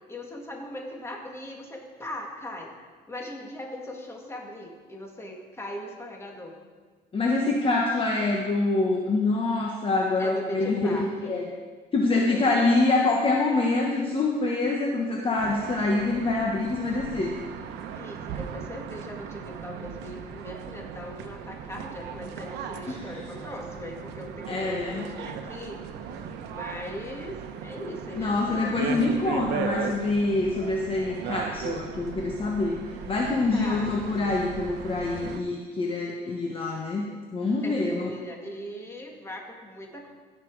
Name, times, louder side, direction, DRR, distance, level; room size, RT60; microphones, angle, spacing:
voice 1, 0.1-2.7 3.1-6.6 10.2-11.4 12.1-12.6 18.0-25.8 26.2-28.8 33.5-34.0 37.6-40.1, equal, 15° left, 0 dB, 1.9 m, -39 dB
voice 2, 7.1-11.5 11.9-17.4 22.9-23.2 24.5-25.1 28.2-32.8 33.1-37.0 37.3-38.1, left 3 dB, 35° left, -1 dB, 1.2 m, -25 dB
sound 1, 15.4-35.4, right 7 dB, 85° right, 0.9 m, -37 dB
16.0 x 6.0 x 4.7 m, 1.4 s
cardioid pair, 110°, 17 cm